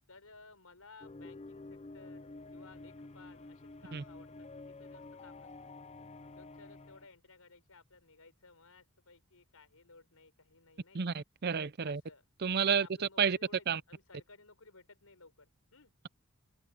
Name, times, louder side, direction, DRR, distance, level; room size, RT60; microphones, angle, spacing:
voice 1, 0.1-5.5 6.3-11.2 11.8-12.2 12.6-15.9, left 3 dB, 90° left, 5.4 m, -58 dB
sound 1, 1.0-7.1, left 2 dB, 30° left, 0.5 m, -49 dB
voice 2, 10.9-12.0 12.4-13.4 13.7-13.8, right 6 dB, 45° right, 0.5 m, -31 dB
head